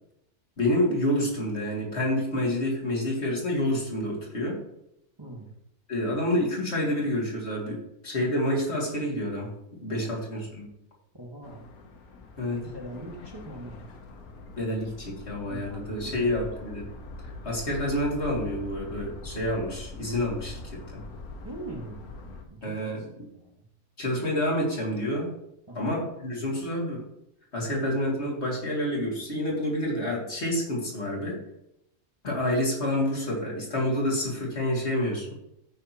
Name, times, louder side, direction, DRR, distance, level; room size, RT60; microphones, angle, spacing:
voice 1, 0.6-4.6 5.9-9.5 9.8-10.7 12.4-12.7 14.6-16.9 17.4-20.6 20.9-21.0 22.6-23.0 24.0-25.3 25.7-27.0 27.5-31.4 32.2-35.3, left 1 dB, 45° left, -3 dB, 2.9 m, -28 dB
voice 2, 5.2-5.5 9.9-10.1 11.1-11.6 12.4-13.9 15.4-16.5 21.4-23.1 23.3-23.6 25.7-26.0 27.7-27.8, right 1 dB, 15° right, -2 dB, 1.7 m, -42 dB
sound 1, 11.4-22.4, left 3 dB, 80° left, 1.6 m, -43 dB
14.5 x 6.5 x 3.0 m, 0.81 s
omnidirectional pair, 1.6 m